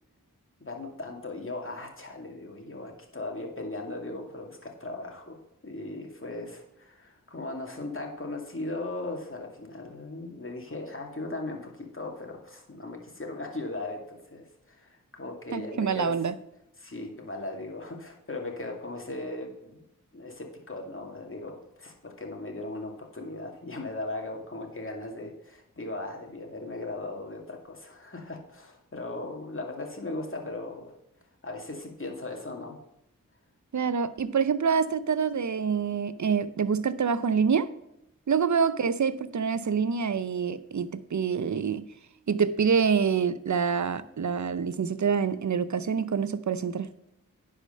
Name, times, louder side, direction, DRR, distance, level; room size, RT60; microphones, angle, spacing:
voice 1, 0.6-16.1 16.8-19.8 20.1-30.9 31.4-32.8, left 2 dB, 40° left, 1 dB, 2.3 m, -38 dB
voice 2, 15.5-16.3 33.7-37.7 38.3-41.9 42.3-46.9, right 6 dB, 60° right, 14 dB, 0.6 m, -26 dB
10.5 x 5.0 x 5.5 m, 0.84 s
wide cardioid pair, 50°, 34 cm